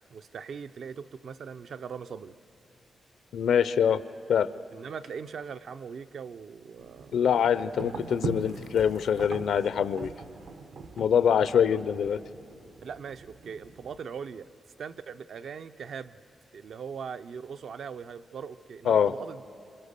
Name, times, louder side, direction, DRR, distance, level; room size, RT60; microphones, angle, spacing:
voice 1, 0.1-2.4 4.7-7.2 12.8-14.5 14.8-16.2 16.5-19.4, right 6 dB, 65° right, 11 dB, 0.5 m, -40 dB
voice 2, 3.3-4.0 4.3-4.5 7.1-10.1 11.0-12.2 18.9-19.1, left 8 dB, 80° left, 15 dB, 0.5 m, -24 dB
sound 1, 6.8-14.0, right 4 dB, 80° right, 1.2 m, -41 dB
29.5 x 27.0 x 6.7 m, 2.7 s
wide cardioid pair, 160°, 0 cm